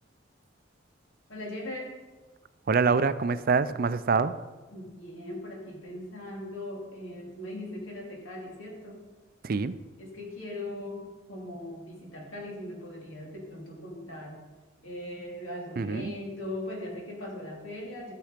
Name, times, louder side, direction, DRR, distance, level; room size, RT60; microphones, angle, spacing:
voice 1, 1.3-1.9 4.7-9.0 10.0-14.4 14.8-18.1, left 1 dB, 90° left, -2 dB, 3.1 m, -39 dB
voice 2, 2.7-4.3 9.4-9.7 15.8-16.1, right 4 dB, 50° right, 14 dB, 0.4 m, -25 dB
13.0 x 6.9 x 5.1 m, 1.3 s
head